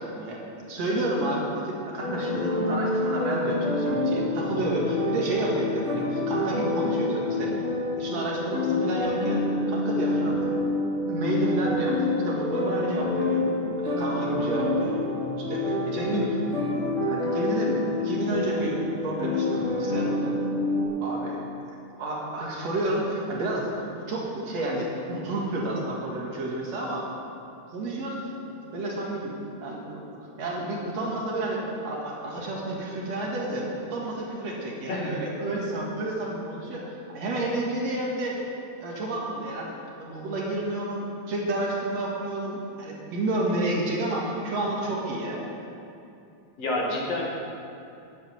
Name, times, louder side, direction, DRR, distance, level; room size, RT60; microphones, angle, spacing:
voice 1, 0.0-9.4 9.7-10.4 11.1-13.4 13.8-15.1 15.4-16.4 16.7-18.8 19.0-20.3 21.0-21.4 22.0-23.7 24.1-27.1 27.7-28.2 28.4-29.3 29.6-30.0 30.4-38.4 38.8-45.4, right 1 dB, 60° right, -3 dB, 2.9 m, -30 dB
sound 1, 2.0-20.8, left 2 dB, 25° left, 3.2 m, -27 dB
voice 2, 46.6-47.2, left 1 dB, 60° left, -3 dB, 2.8 m, -28 dB
9.3 x 8.2 x 9.4 m, 2.6 s
omnidirectional pair, 3.4 m